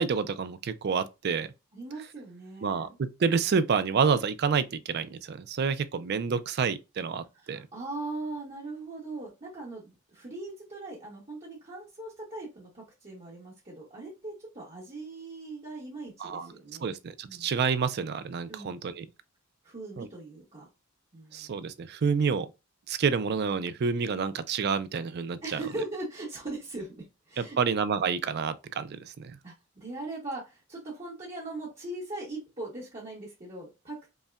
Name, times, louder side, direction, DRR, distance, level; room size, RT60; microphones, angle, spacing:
voice 1, 0.0-1.5 2.6-7.7 16.2-16.5 16.8-19.0 20.0-20.1 21.3-22.5 22.9-25.6 27.4-29.4, right 5 dB, 50° right, 0.4 m, -28 dB
voice 2, 1.7-3.0 7.3-16.9 17.3-17.5 18.5-18.7 19.6-20.7 21.1-21.5 25.4-27.6 29.4-34.1, right 2 dB, 35° right, 1.1 m, -40 dB
5.3 x 2.2 x 2.3 m
head